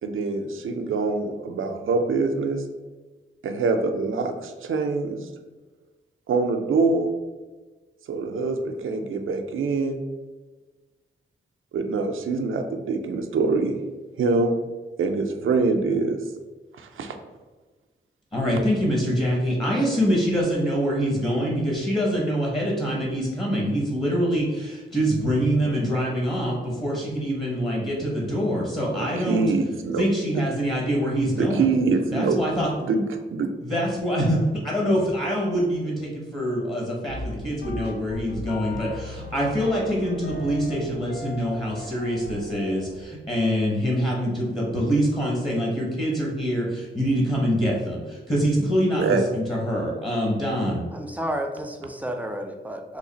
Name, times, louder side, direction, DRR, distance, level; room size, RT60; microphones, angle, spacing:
voice 1, 0.0-2.6 3.4-5.3 6.3-7.1 8.1-10.0 11.7-13.7 14.2-14.6 15.0-16.2 16.8-17.2 29.2-30.1 31.4-32.4 32.8-33.0 33.3-33.5 49.0-49.2, right 4 dB, 80° right, 6 dB, 0.4 m, -24 dB
voice 2, 18.3-29.4 30.0-31.7 32.1-32.7 33.6-50.8, equal, 25° left, -3 dB, 0.8 m, -25 dB
sound 1, 37.1-43.0, left 1 dB, 50° left, 0.6 m, -37 dB
voice 3, 50.9-53.0, equal, 5° right, 4 dB, 0.4 m, -31 dB
3.1 x 2.4 x 3.9 m, 1.3 s
wide cardioid pair, 80°, 21 cm